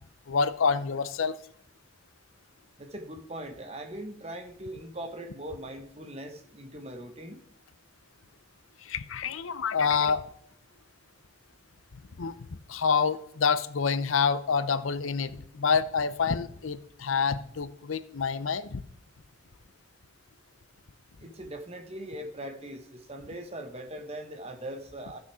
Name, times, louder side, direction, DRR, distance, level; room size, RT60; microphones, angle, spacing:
voice 1, 0.3-1.4 8.8-10.3 12.2-12.4 12.7-18.8, left 5 dB, 85° left, 14 dB, 0.7 m, -27 dB
voice 2, 2.8-7.4 21.2-25.2, right 1 dB, 30° right, 6 dB, 1.3 m, -40 dB
14.5 x 6.6 x 4.8 m, 0.68 s
head